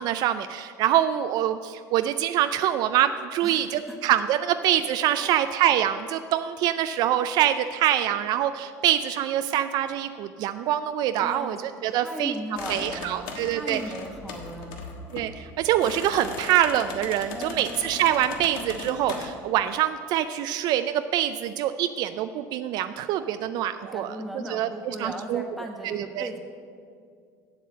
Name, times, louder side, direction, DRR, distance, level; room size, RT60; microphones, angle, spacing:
voice 1, 0.0-12.3 12.7-13.8 15.1-24.2 24.5-25.4 25.8-26.3, right 11 dB, 55° right, 10 dB, 0.4 m, -25 dB
voice 2, 3.4-4.0 5.2-5.4 11.2-11.6 11.9-14.8 17.3-17.7 23.9-26.4, equal, ahead, 0 dB, 1.4 m, -37 dB
sound 1, 12.6-19.3, left 4 dB, 65° left, 1.4 m, -38 dB
8.1 x 7.5 x 7.4 m, 2.3 s
supercardioid pair, 125°, 8 cm